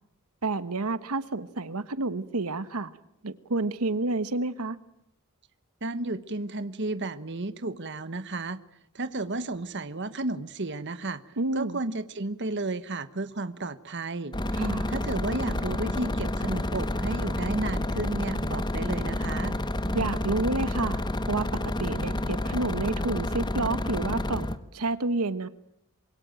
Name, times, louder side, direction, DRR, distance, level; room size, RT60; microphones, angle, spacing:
voice 1, 0.4-2.9 3.2-4.8 11.4-11.8 14.5-14.9 19.9-21.0 21.3-21.4 21.8-25.5, right 3 dB, 80° right, 14 dB, 1.2 m, -29 dB
voice 2, 5.8-8.6 8.9-14.3 14.9-19.5, right 2 dB, 50° right, 13 dB, 1.3 m, -33 dB
sound 1, 14.3-24.6, left 1 dB, 20° left, 1.1 m, -29 dB
26.5 x 23.0 x 9.1 m, 0.77 s
head